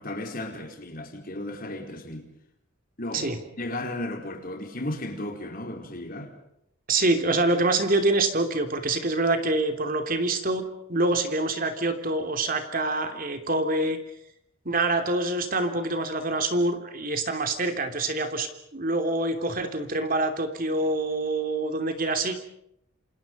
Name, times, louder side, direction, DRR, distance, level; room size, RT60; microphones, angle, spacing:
voice 1, 0.0-2.3 3.0-6.3, left 1 dB, 45° left, 4.7 m, -35 dB
voice 2, 6.9-10.6 10.9-14.0 14.6-22.4, right 2 dB, 45° right, 2.9 m, -26 dB
28.5 x 27.0 x 5.5 m
head